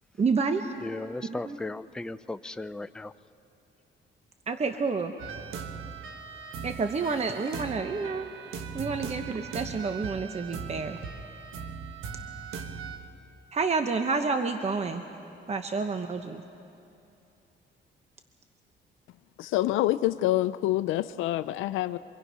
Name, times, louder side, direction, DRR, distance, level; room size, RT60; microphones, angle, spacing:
voice 1, 0.2-0.7 1.3-1.6 4.5-5.1 6.6-8.3 8.7-11.0 13.5-15.0 15.5-16.4, right 4 dB, 35° right, 7 dB, 0.9 m, -29 dB
voice 2, 0.8-3.1, left 2 dB, 5° left, 12 dB, 0.4 m, -36 dB
sound 1, 5.2-13.0, right 5 dB, 85° right, 1.3 m, -39 dB
voice 3, 19.4-22.0, left 15 dB, 90° left, 12 dB, 0.4 m, -26 dB
24.5 x 23.0 x 5.6 m, 2.8 s
cardioid pair, 90°, 20 cm